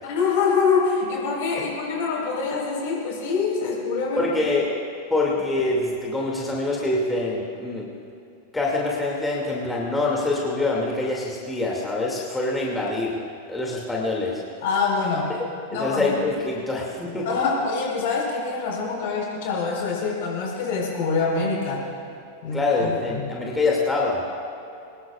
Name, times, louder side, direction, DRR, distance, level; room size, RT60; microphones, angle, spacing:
voice 1, 0.0-4.3 14.6-15.3 15.7-16.4 17.2-21.9 22.4-23.3, left 4 dB, 50° left, -2 dB, 4.6 m, -25 dB
voice 2, 4.2-4.7 5.1-7.9 8.5-13.2 13.5-14.4 15.7-17.3 22.5-24.2, left 2 dB, 10° left, -3 dB, 2.5 m, -25 dB
23.5 x 19.5 x 2.5 m, 2.6 s
figure-of-eight pair, 90°, 0 cm